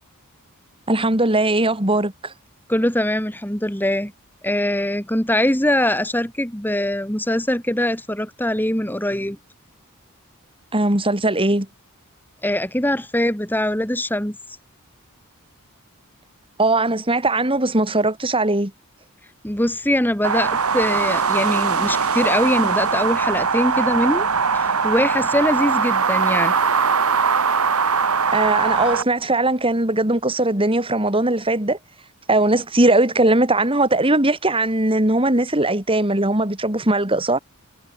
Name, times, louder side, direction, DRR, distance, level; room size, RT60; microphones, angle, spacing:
voice 1, 0.9-2.3 10.7-11.7 16.6-18.7 28.3-31.8 32.3-37.4, right 2 dB, 25° right, 3.5 m, -19 dB
voice 2, 2.7-4.1 4.4-9.4 12.4-14.4 19.4-24.3 24.5-26.5, left 1 dB, 10° left, 3.4 m, -22 dB
sound 1, 20.2-29.0, right 5 dB, 75° right, 1.8 m, -20 dB
head